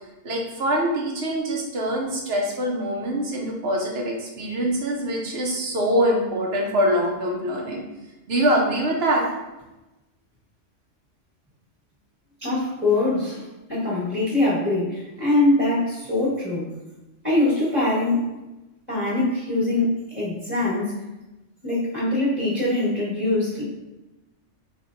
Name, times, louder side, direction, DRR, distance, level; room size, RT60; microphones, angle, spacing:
voice 1, 0.2-7.8 8.3-9.3, equal, 60° right, -1 dB, 1.0 m, -24 dB
voice 2, 12.4-16.7 17.2-18.3 18.9-21.0 21.6-23.6, left 2 dB, 10° right, -10 dB, 1.3 m, -23 dB
4.4 x 3.2 x 2.6 m, 1.0 s
omnidirectional pair, 1.3 m